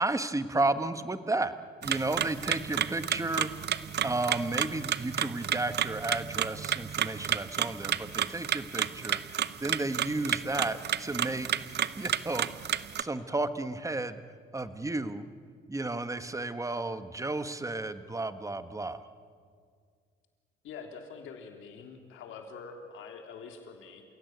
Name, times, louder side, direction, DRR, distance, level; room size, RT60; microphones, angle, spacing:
voice 1, 0.0-1.5 1.8-3.5 4.0-12.7 13.0-14.2 14.5-15.3 15.7-19.0, right 2 dB, 15° right, 11 dB, 1.3 m, -33 dB
sound 1, 1.8-13.0, right 9 dB, 55° right, 0.8 m, -31 dB
voice 2, 20.6-24.0, left 5 dB, 85° left, 3 dB, 3.5 m, -45 dB
28.5 x 17.0 x 9.5 m, 2.1 s
cardioid pair, 90°, 20 cm